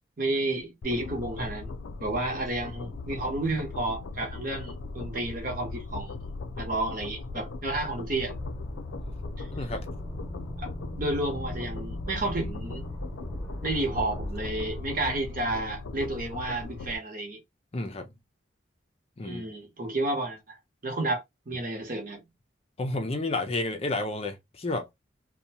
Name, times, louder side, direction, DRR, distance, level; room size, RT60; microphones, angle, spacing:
voice 1, 0.2-1.7 2.0-6.1 6.6-8.3 9.4-9.5 10.6-10.7 11.0-12.9 13.6-17.4 19.2-20.6 20.8-22.2, right 2 dB, 45° right, 1.0 m, -31 dB
sound 1, 0.8-17.0, left 3 dB, 85° left, 0.4 m, -39 dB
sound 2, 8.3-14.8, equal, 5° left, 1.0 m, -38 dB
voice 2, 9.5-9.9 17.7-18.1 19.2-19.4 22.8-24.9, left 2 dB, 30° left, 0.5 m, -31 dB
2.7 x 2.2 x 2.8 m
head